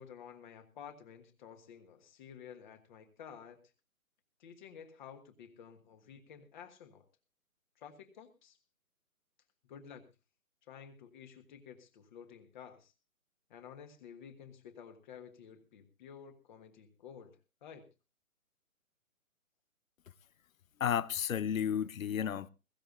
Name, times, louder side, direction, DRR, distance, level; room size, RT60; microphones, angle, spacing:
voice 1, 0.0-3.6 4.4-7.0 7.8-8.6 9.7-10.1 10.7-12.9 13.5-17.8, left 7 dB, 35° left, 1.5 m, -52 dB
voice 2, 20.8-22.5, left 8 dB, 70° left, 0.7 m, -32 dB
22.0 x 14.0 x 2.5 m
figure-of-eight pair, 135°, 42 cm